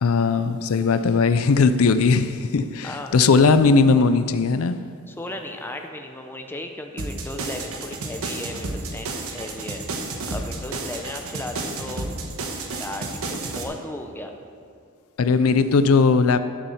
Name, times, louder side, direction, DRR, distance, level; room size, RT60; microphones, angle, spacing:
voice 1, 0.0-4.8 15.2-16.4, left 4 dB, 80° left, 11 dB, 0.5 m, -18 dB
voice 2, 5.1-9.8 10.3-12.1 12.8-14.3, left 1 dB, 10° left, 4 dB, 0.7 m, -35 dB
sound 1, 7.0-13.6, right 2 dB, 80° right, 1.2 m, -31 dB
12.0 x 7.0 x 5.6 m, 2.4 s
head